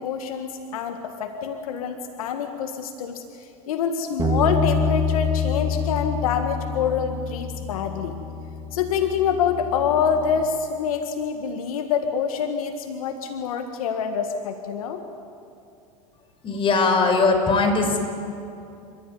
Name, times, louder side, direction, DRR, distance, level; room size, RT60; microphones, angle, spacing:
voice 1, 0.0-3.2 3.7-8.2 8.7-15.0, left 7 dB, 80° left, 6 dB, 1.8 m, -26 dB
Bass guitar, 4.2-10.4, left 4 dB, 20° right, 2.2 m, -27 dB
voice 2, 16.4-18.1, left 3 dB, 30° left, 4 dB, 5.1 m, -20 dB
29.5 x 15.0 x 9.5 m, 2.6 s
supercardioid pair, 110°, 18 cm